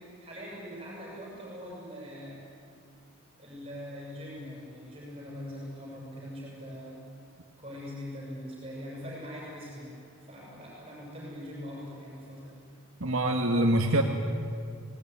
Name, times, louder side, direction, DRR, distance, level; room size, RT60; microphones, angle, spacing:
voice 1, 0.0-2.5 3.4-7.1 7.6-12.7, equal, 25° right, -4 dB, 7.1 m, -42 dB
voice 2, 13.0-14.0, right 1 dB, 70° right, 1 dB, 1.9 m, -24 dB
24.5 x 19.0 x 9.7 m, 2.2 s
head